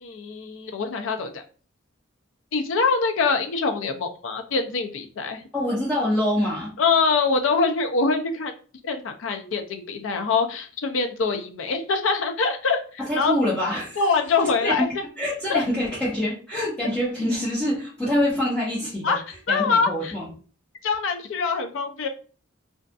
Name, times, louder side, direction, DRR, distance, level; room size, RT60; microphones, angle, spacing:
voice 1, 0.0-1.4 2.5-5.5 6.8-8.5 8.8-13.3 14.0-15.0 15.5-15.6 19.0-19.2 19.5-20.1 20.8-22.1, left 4 dB, 70° left, 6 dB, 0.4 m, -24 dB
voice 2, 5.5-6.7 13.0-14.0 14.6-14.9 15.2-19.2 19.5-20.3, left 1 dB, 5° left, -9 dB, 0.6 m, -25 dB
2.5 x 2.4 x 2.3 m, 0.39 s
head